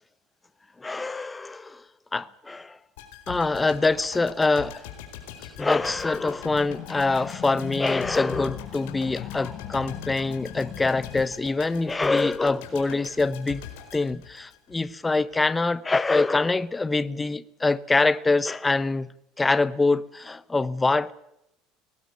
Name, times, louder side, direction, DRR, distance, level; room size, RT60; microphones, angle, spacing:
voice 1, 0.8-1.8 2.1-2.8 3.3-4.9 5.6-13.6 13.9-19.1 19.4-21.1, left 3 dB, 15° left, 0.8 m, -24 dB
sound 1, 3.0-15.0 15.3-15.4, left 9 dB, 80° left, 4.6 m, -43 dB
sound 2, 5.8-11.3, left 11 dB, 50° left, 1.7 m, -39 dB
18.5 x 17.0 x 9.5 m
supercardioid pair, 95°, 0 cm